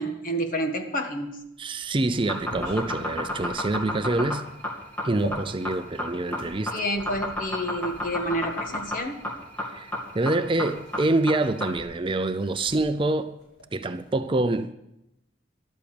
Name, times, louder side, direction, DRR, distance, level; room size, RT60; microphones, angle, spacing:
voice 1, 0.0-1.4 6.7-9.2, equal, 45° left, 5 dB, 1.7 m, -29 dB
sound 1, 1.2-6.6 7.5-8.8 10.0-10.2 10.5-11.6 11.9-14.1, left 2 dB, 80° left, 5.3 m, -44 dB
voice 2, 1.6-4.4 5.0-6.7 9.7-13.3 13.7-14.7, right 2 dB, 30° right, 9 dB, 0.6 m, -26 dB
sound 2, 2.1-11.8, left 1 dB, 10° left, 2.8 m, -31 dB
14.0 x 12.0 x 5.1 m, 0.85 s
head